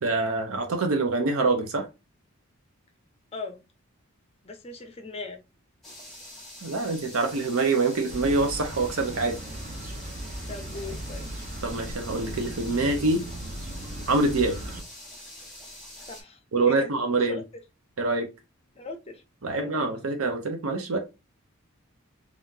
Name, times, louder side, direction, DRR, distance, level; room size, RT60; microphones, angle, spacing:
voice 1, 0.0-1.9 6.6-9.3 11.6-13.2 14.1-14.5 16.5-17.4 18.0-18.3 19.4-21.0, right 3 dB, 75° right, 0.7 m, -25 dB
voice 2, 4.4-5.4 10.5-11.3 16.1-16.4 16.6-16.9 17.2-17.4 18.7-19.2 19.5-19.7, left 3 dB, 25° left, 0.6 m, -38 dB
sound 1, 5.8-16.2, left 1 dB, ahead, 1.4 m, -45 dB
sound 2, 8.1-14.8, right 1 dB, 35° right, 0.6 m, -37 dB
3.6 x 2.4 x 2.7 m
head